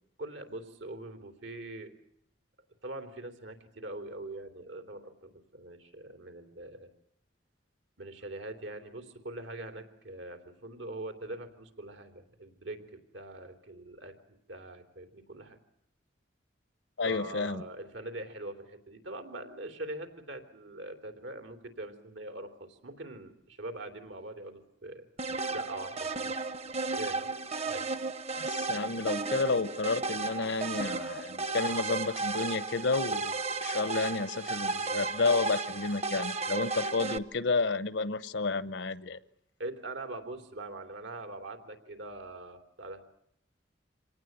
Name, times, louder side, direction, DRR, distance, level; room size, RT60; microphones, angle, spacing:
voice 1, 0.2-1.9 2.8-6.9 8.0-15.6 17.0-25.0 25.5-26.3 27.0-27.3 27.6-27.9 39.6-43.0, right 2 dB, 85° right, 8 dB, 3.3 m, -43 dB
voice 2, 17.0-17.6 28.3-39.2, left 3 dB, 75° left, 17 dB, 1.0 m, -31 dB
sound 1, 25.2-37.2, right 3 dB, 35° right, 0.9 m, -34 dB
26.0 x 18.5 x 9.3 m, 0.76 s
head